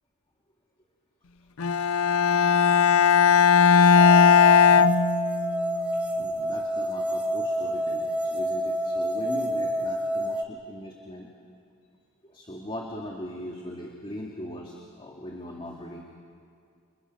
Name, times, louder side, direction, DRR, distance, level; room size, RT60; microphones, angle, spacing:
Bowed string instrument, 1.6-5.7, left 6 dB, 70° left, 0.6 m, -18 dB
sound 1, 3.9-10.4, right 1 dB, 5° right, 0.9 m, -28 dB
voice 1, 5.5-11.3 12.2-16.0, left 1 dB, 25° left, -1 dB, 2.2 m, -40 dB
28.5 x 28.0 x 5.5 m, 2.3 s
head